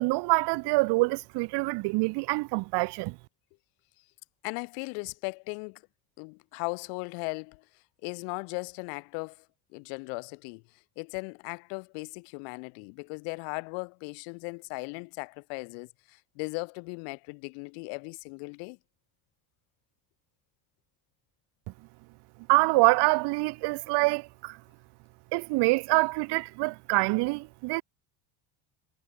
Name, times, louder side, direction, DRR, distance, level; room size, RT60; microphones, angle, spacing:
voice 1, 0.0-3.2 22.5-24.6 25.3-27.8, right 24 dB, 60° right, 0.5 m, -25 dB
voice 2, 4.4-5.8 6.2-7.7 8.0-9.5 9.7-18.8, left 40 dB or more, 85° left, 2.1 m, -38 dB
supercardioid pair, 100°, 48 cm